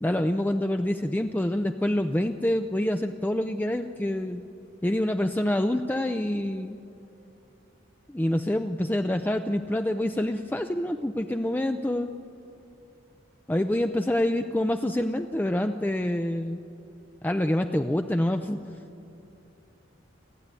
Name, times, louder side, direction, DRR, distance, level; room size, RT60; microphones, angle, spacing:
voice 1, 0.0-4.4 4.8-6.8 8.1-12.1 13.5-16.6 17.2-18.6, left 1 dB, 10° left, 6 dB, 0.5 m, -26 dB
29.0 x 12.0 x 9.7 m, 2.8 s
head